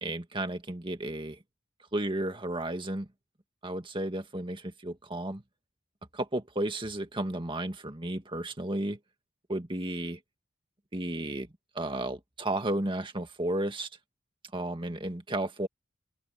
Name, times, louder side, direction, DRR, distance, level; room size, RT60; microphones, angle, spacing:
voice 1, 0.0-1.4 1.9-3.1 3.6-5.4 6.1-9.0 9.5-10.2 10.9-11.5 11.8-13.9 14.5-15.7, right 1 dB, 25° right, 1.9 m, -33 dB
open air
head